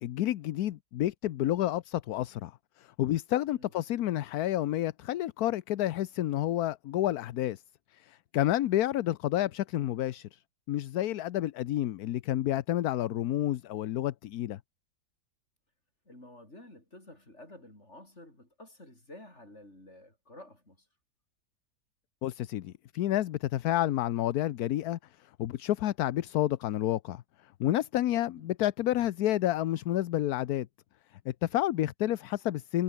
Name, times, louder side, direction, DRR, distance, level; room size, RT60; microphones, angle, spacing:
voice 1, 0.0-2.5 2.8-7.6 8.0-10.4 10.7-14.6 22.2-25.0 25.4-27.2 27.6-30.7 31.3-32.8, left 13 dB, 70° left, 1.2 m, -29 dB
voice 2, 8.3-8.7 16.0-20.9 28.4-28.5, left 1 dB, 40° left, 8.1 m, -52 dB
omnidirectional pair, 1.8 m